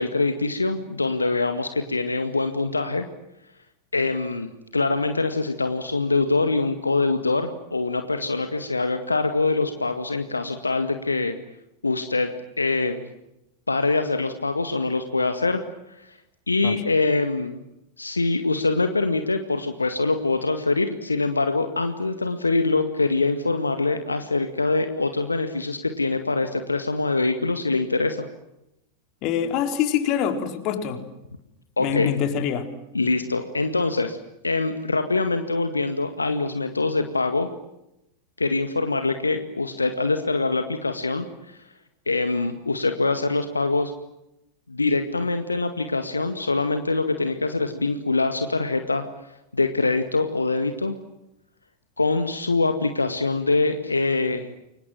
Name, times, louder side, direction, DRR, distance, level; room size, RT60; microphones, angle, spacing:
voice 1, 0.0-3.1 3.9-11.3 11.8-13.0 13.7-15.6 16.5-17.6 18.0-28.3 31.8-32.1 32.9-34.2 34.4-37.5 38.4-41.6 42.1-43.9 44.7-49.0 49.5-51.0 52.0-54.5, left 3 dB, 80° left, 8 dB, 2.0 m, -24 dB
voice 2, 29.2-31.0 31.8-32.7, left 8 dB, 40° left, 7 dB, 4.2 m, -25 dB
29.5 x 25.0 x 7.5 m, 0.87 s
figure-of-eight pair, 90°, 0 cm